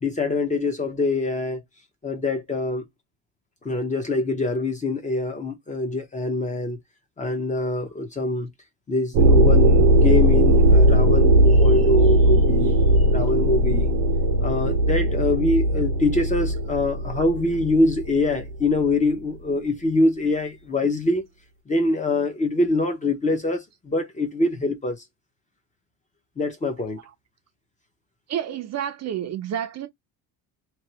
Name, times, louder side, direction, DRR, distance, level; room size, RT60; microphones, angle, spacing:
voice 1, 0.0-1.6 2.0-2.9 3.6-6.8 7.2-8.5 8.9-12.8 13.1-13.9 14.4-21.2 21.7-25.0 26.4-27.0, left 2 dB, 20° left, 0.5 m, -24 dB
sound 1, 9.1-18.6, right 1 dB, 80° right, 0.8 m, -18 dB
voice 2, 28.3-29.9, right 10 dB, 40° right, 0.5 m, -29 dB
3.0 x 2.2 x 2.8 m
cardioid pair, 165°, 40 cm